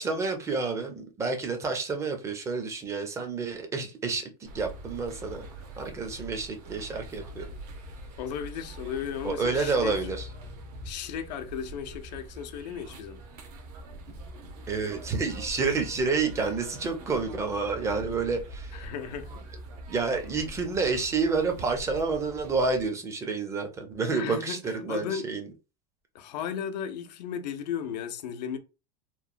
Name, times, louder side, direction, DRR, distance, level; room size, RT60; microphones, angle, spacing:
voice 1, 0.0-4.3 4.5-5.5 5.8-7.5 9.2-10.3 14.7-18.8 19.9-25.5, right 4 dB, 15° right, 0.4 m, -29 dB
sound 1, 4.4-22.9, equal, 60° right, 0.8 m, -43 dB
voice 2, 8.2-9.9 10.8-13.2 18.7-19.5 24.1-24.6 24.9-25.3 26.1-28.6, left 8 dB, 85° left, 0.6 m, -35 dB
3.0 x 2.1 x 2.5 m
supercardioid pair, 155°, 21 cm